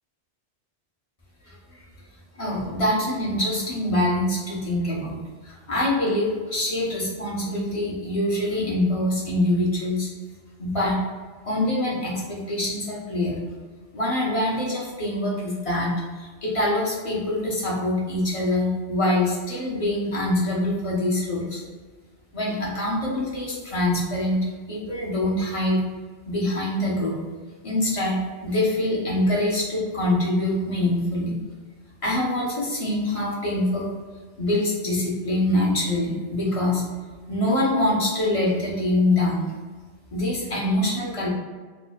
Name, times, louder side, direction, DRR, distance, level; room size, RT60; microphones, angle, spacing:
voice 1, 1.5-1.8 2.3-5.2 5.4-10.1 10.6-11.0 11.5-13.4 13.9-15.9 16.1-21.6 22.3-24.4 24.7-25.8 26.3-27.2 27.6-28.2 28.4-31.4 32.0-33.9 34.4-36.8 37.3-39.5 40.1-41.3, left 1 dB, 35° left, -5 dB, 0.7 m, -24 dB
4.3 x 2.1 x 2.2 m, 1.4 s
omnidirectional pair, 1.2 m